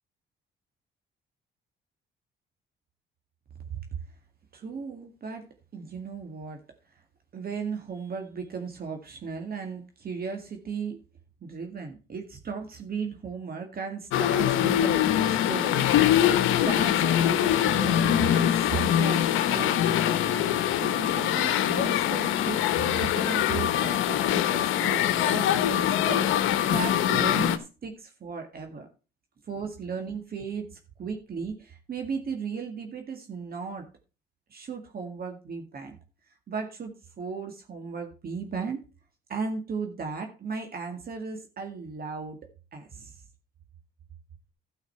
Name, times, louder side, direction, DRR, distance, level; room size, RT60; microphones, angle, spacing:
voice 1, 4.5-5.5 5.7-6.6 7.3-11.0 11.4-20.4 20.8-28.9 29.4-33.9 34.5-36.0 36.3-38.8 39.3-42.4 42.7-43.2, right 5 dB, 50° right, 5 dB, 2.0 m, -36 dB
sound 1, 14.1-27.6, left 11 dB, 90° left, 1.0 m, -23 dB
12.5 x 5.7 x 5.7 m, 0.32 s
cardioid pair, 90°, 20 cm